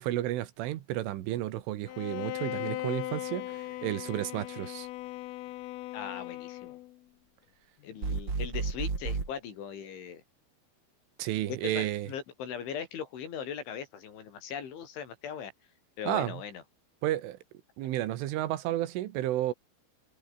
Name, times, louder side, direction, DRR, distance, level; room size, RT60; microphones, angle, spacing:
voice 1, 0.0-4.9 11.2-12.1 16.1-16.4 17.0-17.4 17.8-19.5, right 14 dB, 80° right, 3.9 m, -32 dB
Bowed string instrument, 1.9-7.0, left 17 dB, 85° left, 3.7 m, -38 dB
voice 2, 5.9-6.8 7.8-10.2 11.8-15.5 16.0-16.6, left 8 dB, 70° left, 6.1 m, -39 dB
sound 1, 8.0-9.3, right 4 dB, 25° right, 4.0 m, -32 dB
omnidirectional pair, 5.7 m